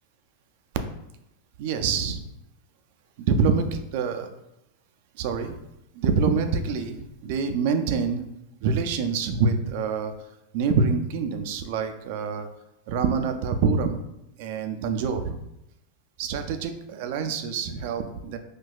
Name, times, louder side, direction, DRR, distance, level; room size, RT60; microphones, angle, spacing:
voice 1, 1.6-2.2 3.2-4.3 5.2-5.6 5.9-8.2 8.6-10.1 10.5-12.5 12.9-14.0 14.4-15.4 16.2-18.4, right 5 dB, 60° right, 7 dB, 0.4 m, -26 dB
4.2 x 2.2 x 2.3 m, 0.87 s
hypercardioid pair, 105°, 0 cm